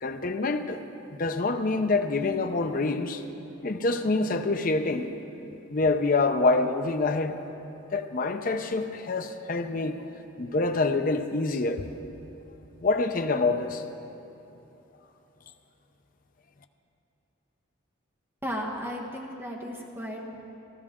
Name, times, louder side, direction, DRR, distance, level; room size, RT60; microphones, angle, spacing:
voice 1, 0.0-0.8 1.1-3.2 3.6-5.1 5.7-7.3 7.9-10.0 10.4-11.9 12.8-13.8, left 3 dB, 45° left, 7 dB, 0.6 m, -26 dB
voice 2, 18.4-20.4, equal, 10° right, -1 dB, 1.2 m, -35 dB
15.5 x 14.0 x 3.7 m, 3.0 s
head